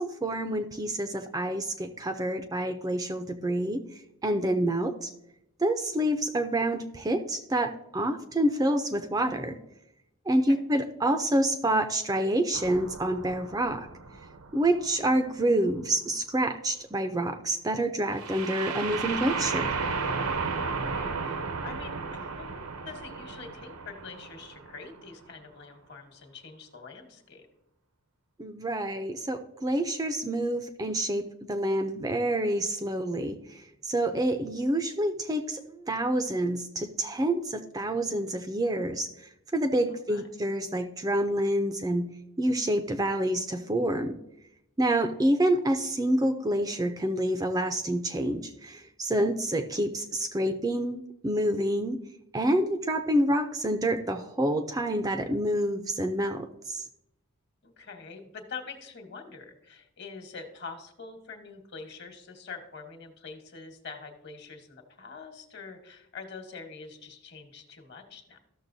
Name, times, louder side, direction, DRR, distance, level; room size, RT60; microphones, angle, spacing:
voice 1, 0.0-5.1 5.6-9.6 10.3-13.9 14.5-19.7 28.4-42.1 42.4-44.2 44.8-52.0 52.3-56.8, right 1 dB, 15° right, 7 dB, 0.4 m, -28 dB
sound 1, 12.5-15.4 18.1-25.0, right 4 dB, 80° right, 0.8 m, -34 dB
voice 2, 20.6-27.5 39.9-40.3 45.1-45.2 57.6-68.4, left 5 dB, 50° left, 5 dB, 1.3 m, -45 dB
13.5 x 6.6 x 2.7 m, 0.82 s
head